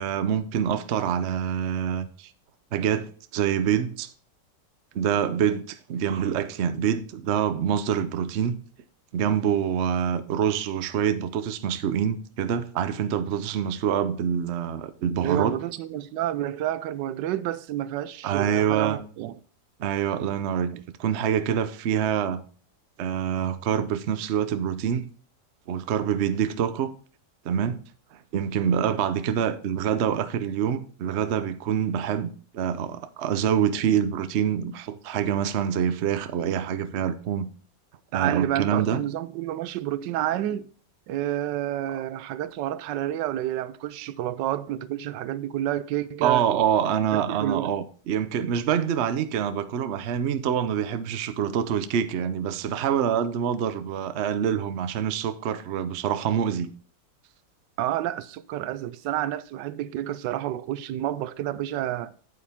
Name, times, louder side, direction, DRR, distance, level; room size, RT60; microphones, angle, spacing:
voice 1, 0.0-2.3 2.7-4.1 4.9-8.6 9.1-15.6 18.2-19.0 19.8-22.4 23.0-25.1 25.7-26.9 27.4-27.8 28.1-37.5 38.1-39.0 46.2-56.7, right 8 dB, 60° right, 0.7 m, -26 dB
voice 2, 15.2-19.4 20.7-20.8 38.1-40.7 41.1-46.4 47.1-47.7 57.8-62.1, right 13 dB, 80° right, 1.2 m, -29 dB
8.6 x 8.6 x 3.5 m
omnidirectional pair, 1.9 m